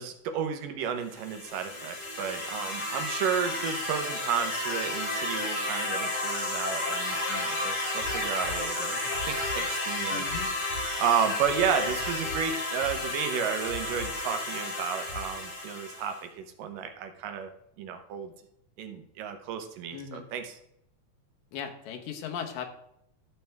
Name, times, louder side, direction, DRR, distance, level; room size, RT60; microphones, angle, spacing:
voice 1, 0.0-10.6 11.0-17.5 17.8-18.3 18.8-20.6, right 7 dB, 80° right, 7 dB, 2.6 m, -32 dB
sound 1, 1.1-16.2, left 2 dB, 50° left, 3.8 m, -32 dB
sound 2, 8.0-8.1 8.4-8.6 9.1-9.8 10.3-10.4 10.7-10.9 11.4-12.3 12.8-13.2 13.7-14.3 15.1-15.4, left 4 dB, 20° right, 3.7 m, -41 dB
voice 2, 10.1-10.5 19.9-20.3 21.5-22.7, left 8 dB, 80° left, 4 dB, 2.8 m, -37 dB
12.5 x 6.7 x 3.5 m, 0.75 s
omnidirectional pair, 3.9 m